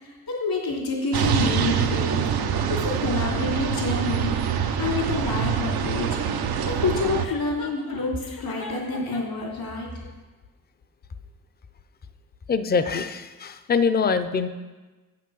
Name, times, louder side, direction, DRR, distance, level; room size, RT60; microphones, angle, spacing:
voice 1, 0.0-2.3 2.7-9.9, left 3 dB, 80° left, -2 dB, 2.9 m, -28 dB
sound 1, 1.1-7.3, right 7 dB, 85° right, 0.7 m, -25 dB
Chuckle chortle, 7.2-9.4, left 4 dB, 60° left, 1.0 m, -41 dB
voice 2, 12.5-14.5, left 5 dB, 25° left, 11 dB, 0.5 m, -23 dB
8.6 x 5.9 x 6.1 m, 1.2 s
cardioid pair, 105°, 36 cm